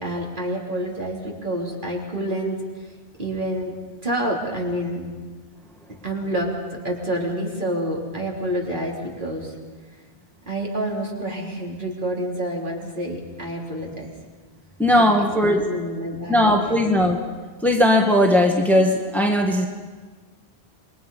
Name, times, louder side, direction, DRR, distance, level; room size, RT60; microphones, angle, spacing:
voice 1, 0.0-2.6 3.2-3.8 4.0-5.1 6.0-6.6 6.8-9.5 10.5-14.1 15.0-16.9, right 1 dB, 50° right, -1 dB, 3.7 m, -28 dB
voice 2, 14.8-15.6 16.3-17.2 17.6-19.7, left 1 dB, ahead, 2 dB, 1.8 m, -18 dB
27.5 x 22.0 x 5.6 m, 1.4 s
omnidirectional pair, 1.1 m